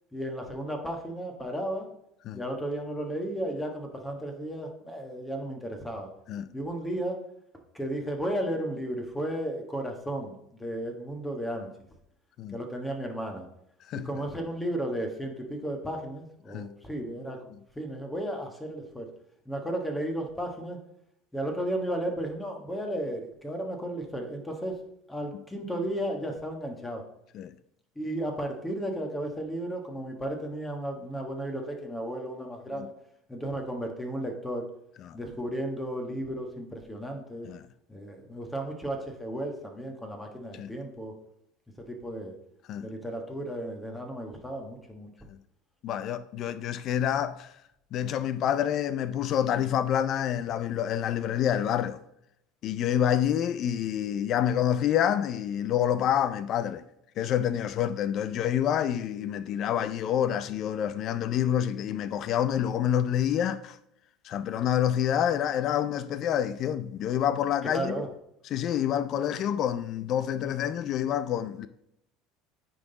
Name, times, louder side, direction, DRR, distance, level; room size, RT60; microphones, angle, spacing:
voice 1, 0.1-1.9 2.3-6.1 6.5-7.2 7.7-10.3 10.6-11.7 12.5-13.4 13.9-19.1 19.5-20.8 21.3-24.8 25.1-27.0 28.0-32.9 33.3-34.6 35.1-37.5 37.9-41.1 41.9-42.3 42.8-45.1 67.6-68.1, right 1 dB, 10° left, 1.4 m, -34 dB
voice 2, 45.8-47.5 47.9-52.0 52.6-56.8 57.2-63.8 64.2-67.9 68.5-71.7, left 10 dB, 55° left, 0.4 m, -27 dB
9.5 x 3.8 x 4.0 m
supercardioid pair, 95°, 0 cm